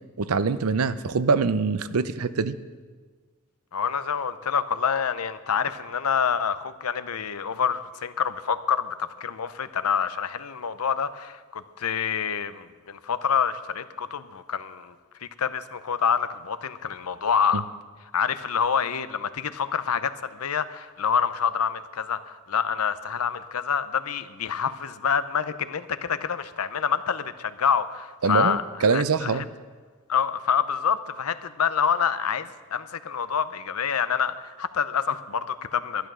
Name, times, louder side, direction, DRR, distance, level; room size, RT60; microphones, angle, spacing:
voice 1, 0.2-2.6 17.5-17.6 28.2-29.4, right 4 dB, 80° right, 14 dB, 0.6 m, -24 dB
voice 2, 3.7-14.9 15.2-17.6 18.1-28.6 28.9-29.4 30.1-36.1, left 7 dB, 90° left, 13 dB, 0.7 m, -27 dB
12.5 x 11.5 x 6.2 m, 1.4 s
head